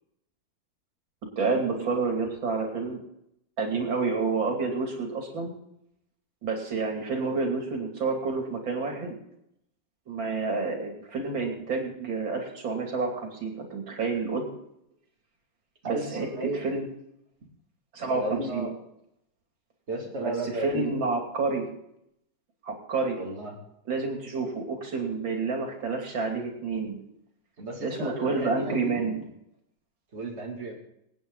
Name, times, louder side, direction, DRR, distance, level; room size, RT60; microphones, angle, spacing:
voice 1, 1.4-3.0 3.6-5.5 6.4-9.2 10.1-14.5 15.9-16.3 16.6-16.8 17.9-18.7 20.2-21.7 22.6-23.2 23.9-27.0 27.8-29.2, right 4 dB, 85° right, 1 dB, 3.5 m, -29 dB
voice 2, 15.8-16.7 18.0-18.7 19.9-21.1 23.2-23.6 27.6-29.3 30.1-30.7, right 2 dB, 35° right, -1 dB, 3.2 m, -33 dB
26.0 x 9.2 x 3.9 m, 0.77 s
omnidirectional pair, 2.0 m